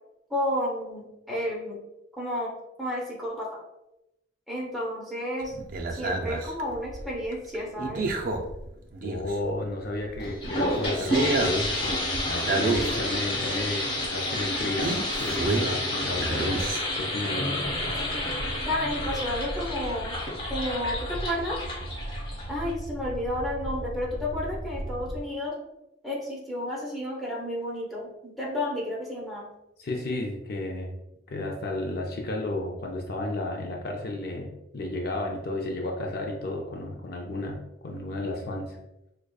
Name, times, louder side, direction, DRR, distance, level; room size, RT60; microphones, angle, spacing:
voice 1, 0.3-1.8 2.2-3.6 4.5-5.6 6.0-8.1 12.9-13.1 18.0-18.1 18.6-20.2 20.5-21.6 22.5-25.5 26.0-29.5, left 1 dB, ahead, -6 dB, 0.8 m, -31 dB
sound 1, 5.4-9.7 10.1-13.2 13.6-13.7 14.8-15.8 16.1-17.1 17.6-25.2, right 2 dB, 50° right, 0.4 m, -32 dB
voice 2, 9.0-18.0 29.8-30.9 31.3-38.8, left 2 dB, 55° left, 0 dB, 0.5 m, -33 dB
sound 2, 10.2-22.7, left 1 dB, 30° left, 1.2 m, -30 dB
4.8 x 2.2 x 2.3 m, 0.89 s
head